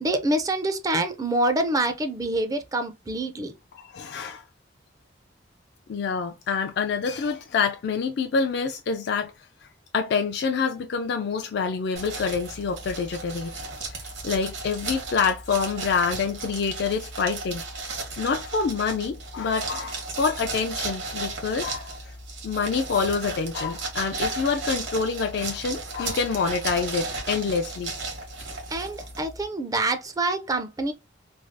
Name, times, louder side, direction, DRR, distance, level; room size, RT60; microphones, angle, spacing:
voice 1, 0.0-3.5 28.7-30.9, right 2 dB, 20° right, 0.4 m, -26 dB
voice 2, 3.7-4.4 5.9-9.3 9.9-13.5 13.9-17.6 18.2-22.0 22.4-27.9, left 5 dB, 60° left, 0.4 m, -27 dB
sound 1, 12.0-29.5, right 3 dB, 70° right, 1.3 m, -35 dB
3.2 x 2.3 x 2.6 m
head